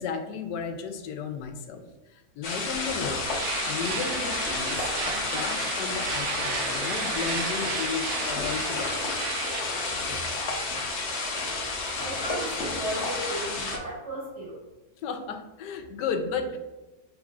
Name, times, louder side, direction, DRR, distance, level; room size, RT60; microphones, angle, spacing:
voice 1, 0.0-3.3 3.6-4.9 5.2-9.0 15.0-16.6, left 5 dB, 85° left, 6 dB, 1.2 m, -34 dB
sound 1, 2.4-13.8, left 3 dB, 55° left, 0.9 m, -30 dB
sound 2, 3.2-9.6, right 6 dB, 85° right, 0.6 m, -34 dB
voice 2, 12.0-14.6, right 1 dB, 45° right, -4 dB, 1.7 m, -35 dB
6.4 x 3.3 x 2.4 m, 1.1 s
omnidirectional pair, 1.8 m